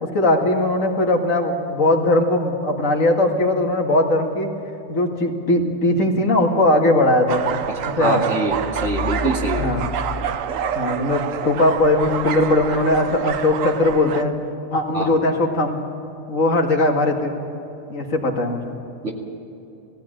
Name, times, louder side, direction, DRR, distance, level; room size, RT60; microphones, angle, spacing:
voice 1, 0.0-4.5 4.9-7.4 7.8-8.3 9.6-9.8 10.8-14.3 14.7-15.8 16.3-17.3 17.9-18.7, left 1 dB, 90° left, 2 dB, 2.3 m, -19 dB
sound 1, 7.3-14.2, right 8 dB, 80° right, 1.2 m, -27 dB
voice 2, 7.7-8.6 8.8-9.7 14.9-15.2 19.0-19.1, right 2 dB, 65° right, 0 dB, 2.6 m, -24 dB
sound 2, 8.5-11.2, left 4 dB, 10° left, 1.3 m, -31 dB
19.5 x 15.5 x 8.8 m, 2.8 s
omnidirectional pair, 1.3 m